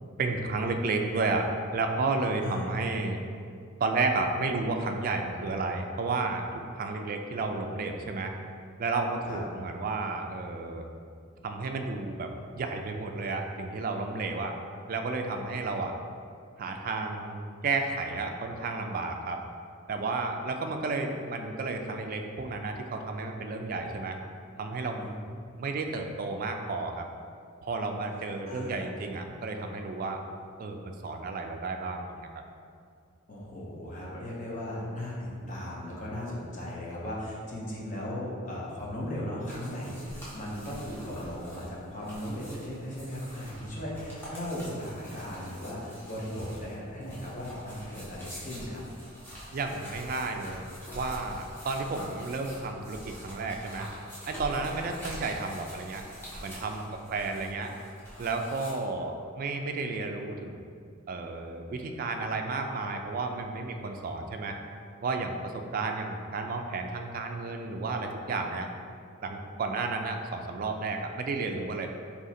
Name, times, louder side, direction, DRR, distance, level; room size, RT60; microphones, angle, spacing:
voice 1, 0.2-3.2 3.8-6.5 6.7-8.3 8.8-10.9 11.4-14.6 14.9-15.9 16.6-19.4 19.9-24.2 24.6-25.1 25.6-27.1 27.6-30.2 30.6-32.3 49.5-50.6 50.9-53.9 54.3-56.0 56.4-57.7 58.2-60.6 61.1-64.6 65.0-68.7 69.2-71.9, right 3 dB, 40° right, 4 dB, 0.3 m, -32 dB
voice 2, 2.4-2.7 9.3-9.4 25.0-25.2 28.4-28.8 33.3-48.8 54.7-54.9 56.9-57.0, left 1 dB, 35° left, -5 dB, 0.8 m, -37 dB
sound 1, 39.5-58.7, equal, 10° left, 1.0 m, -45 dB
3.7 x 2.8 x 4.2 m, 2.4 s
head